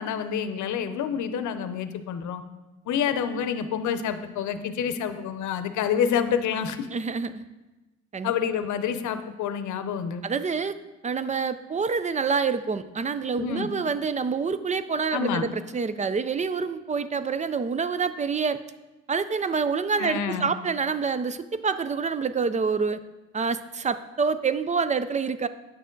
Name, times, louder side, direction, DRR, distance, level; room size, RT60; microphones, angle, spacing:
voice 1, 0.0-2.4 2.9-6.9 8.2-10.2 13.4-13.7 15.1-15.5 20.0-20.5, left 7 dB, 75° left, 10 dB, 0.7 m, -28 dB
voice 2, 6.9-7.4 8.1-8.3 10.2-10.7 11.0-18.6 19.1-23.0 23.3-25.5, right 5 dB, 25° right, 13 dB, 0.4 m, -27 dB
9.2 x 6.5 x 3.9 m, 1.1 s
cardioid pair, 90°, 30 cm